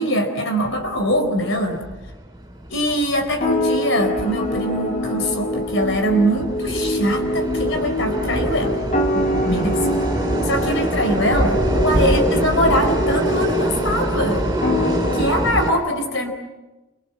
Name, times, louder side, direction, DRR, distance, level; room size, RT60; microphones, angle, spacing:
voice 1, 0.0-1.8 2.7-8.8 9.1-10.1 10.4-14.5 15.1-16.3, equal, 60° left, 5 dB, 4.4 m, -22 dB
sound 1, 0.6-15.7, right 1 dB, 20° right, 7.3 m, -25 dB
sound 2, 3.4-15.3, equal, 35° left, 3.8 m, -25 dB
29.0 x 24.5 x 7.6 m, 1.1 s
head